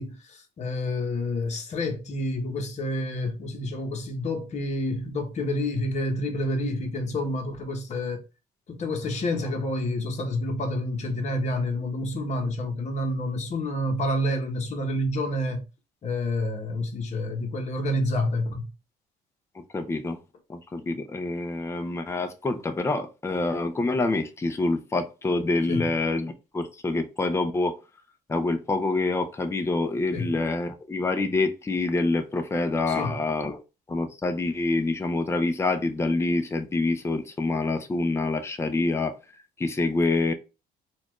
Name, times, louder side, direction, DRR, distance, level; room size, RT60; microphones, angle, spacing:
voice 1, 0.0-8.2 8.7-15.6 16.0-18.7 25.7-25.8 30.1-30.3 32.9-33.2, left 1 dB, 45° left, 1.0 m, -28 dB
voice 2, 19.6-20.2 20.5-27.8 28.3-33.6 33.9-39.2 39.6-40.3, left 3 dB, 15° left, 0.5 m, -26 dB
4.2 x 2.4 x 3.0 m
cardioid pair, 110°, 17 cm